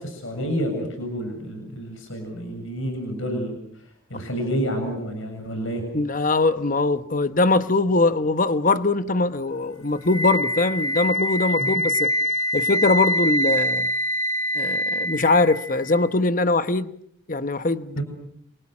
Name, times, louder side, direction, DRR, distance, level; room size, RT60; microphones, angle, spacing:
voice 1, 0.0-3.6 4.1-5.8 11.6-11.8 18.0-18.1, equal, 70° left, 7.3 m, -29 dB
voice 2, 5.9-12.1 12.5-13.9 14.5-16.9 17.3-18.0, left 3 dB, 40° left, 1.0 m, -22 dB
Wind instrument woodwind instrument, 10.1-16.1, equal, 90° left, 1.6 m, -25 dB
30.0 x 28.5 x 6.2 m
head